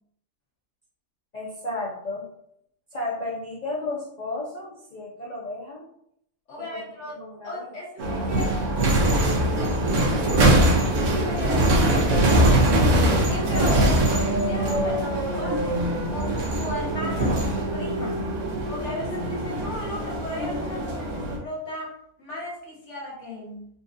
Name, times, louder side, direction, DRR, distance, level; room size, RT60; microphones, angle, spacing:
voice 1, 1.3-2.3 2.9-5.8 6.7-6.8 7.1-7.8, left 2 dB, 70° left, -5 dB, 0.4 m, -33 dB
voice 2, 6.5-7.2 7.4-9.7 10.1-13.0 13.2-15.8 16.1-18.3 18.7-23.7, left 1 dB, 50° left, -5 dB, 1.5 m, -36 dB
sound 1, 8.0-21.4, right 1 dB, 60° right, 1.0 m, -22 dB
4.1 x 2.3 x 2.5 m, 0.72 s
omnidirectional pair, 1.7 m